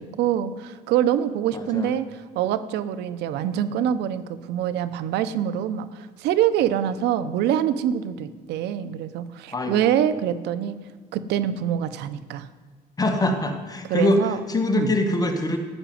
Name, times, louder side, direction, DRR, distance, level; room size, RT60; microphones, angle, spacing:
voice 1, 0.0-2.1 2.3-10.8 11.1-12.5 13.9-14.4 14.7-14.9, right 10 dB, 85° right, 13 dB, 0.8 m, -25 dB
voice 2, 1.5-1.9 9.5-9.9 13.0-14.2 14.5-15.6, left 2 dB, 20° left, 5 dB, 1.6 m, -23 dB
14.5 x 6.1 x 9.3 m, 1.5 s
cardioid pair, 110°, 17 cm